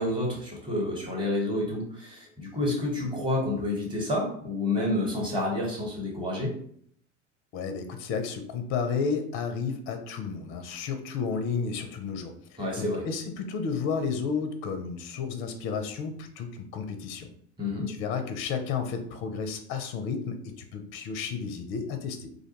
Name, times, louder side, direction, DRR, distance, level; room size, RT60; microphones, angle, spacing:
voice 1, 0.0-6.5 12.6-13.0 17.6-17.9, left 1 dB, 10° right, -2 dB, 1.0 m, -29 dB
voice 2, 7.5-12.3 12.6-17.3 17.9-22.3, left 5 dB, 35° left, 7 dB, 0.4 m, -32 dB
2.4 x 2.2 x 2.8 m, 0.62 s
hypercardioid pair, 80°, 38 cm